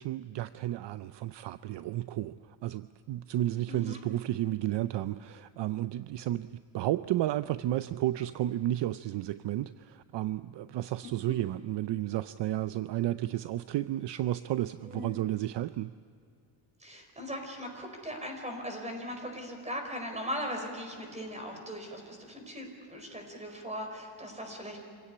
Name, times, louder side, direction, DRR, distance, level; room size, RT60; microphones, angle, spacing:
voice 1, 0.0-15.9, right 14 dB, 60° right, 13 dB, 0.6 m, -32 dB
voice 2, 3.7-4.0 11.3-11.4 14.8-15.2 16.8-24.8, equal, 15° right, 4 dB, 4.8 m, -39 dB
26.5 x 17.0 x 9.9 m, 2.4 s
cardioid pair, 140°, 48 cm